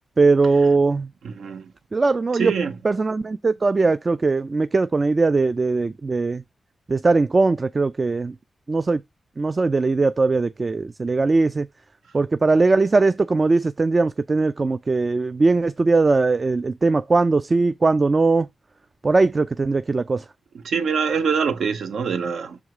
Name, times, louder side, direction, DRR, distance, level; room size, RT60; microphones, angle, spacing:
voice 1, 0.2-1.1 1.9-2.5 2.8-6.4 6.9-8.4 8.7-9.0 9.4-11.7 12.1-18.5 19.0-20.2, right 3 dB, 40° right, 0.3 m, -20 dB
voice 2, 1.2-1.7 2.3-2.8 20.6-22.6, right 6 dB, 85° right, 0.8 m, -24 dB
6.4 x 3.6 x 4.7 m
cardioid pair, 55°, 0 cm